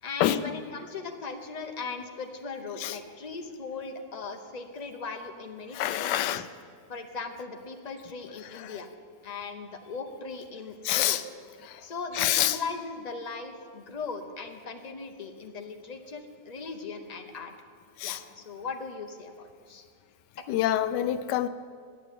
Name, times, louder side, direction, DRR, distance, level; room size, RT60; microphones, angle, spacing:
voice 1, 0.0-6.5 6.9-8.9 9.2-11.2 11.8-17.5 18.0-19.9, left 4 dB, 35° left, 5 dB, 0.7 m, -38 dB
voice 2, 5.7-6.4 8.6-8.7 10.8-11.2 11.6-11.8 12.2-12.6 18.0-18.2 20.5-21.5, left 12 dB, 85° left, 13 dB, 1.2 m, -26 dB
10.5 x 7.0 x 9.0 m, 2.1 s
omnidirectional pair, 1.8 m